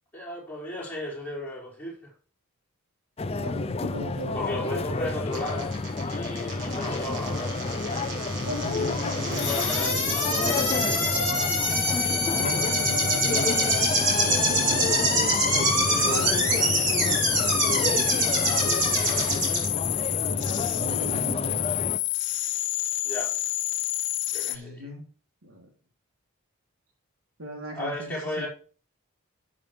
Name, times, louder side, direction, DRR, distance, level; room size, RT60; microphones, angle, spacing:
voice 1, 0.1-2.1 4.3-5.7 6.0-7.5 9.4-10.6 15.9-17.4 23.0-23.3 24.3-24.9 27.7-28.5, left 1 dB, 10° left, -6 dB, 4.9 m, -35 dB
sound 1, 3.2-22.0, left 3 dB, 25° left, 0.4 m, -30 dB
voice 2, 3.3-4.7 8.4-11.0 12.3-13.8 14.1-16.5 16.9-17.1 20.2-21.8 24.4-25.0 25.4-25.7 27.4-28.5, equal, 75° right, 2 dB, 3.0 m, -38 dB
sound 2, 5.3-19.6, right 2 dB, 55° right, 5.1 m, -27 dB
sound 3, 9.3-24.6, left 16 dB, 55° left, 0.7 m, -29 dB
13.0 x 7.2 x 3.3 m, 0.39 s
head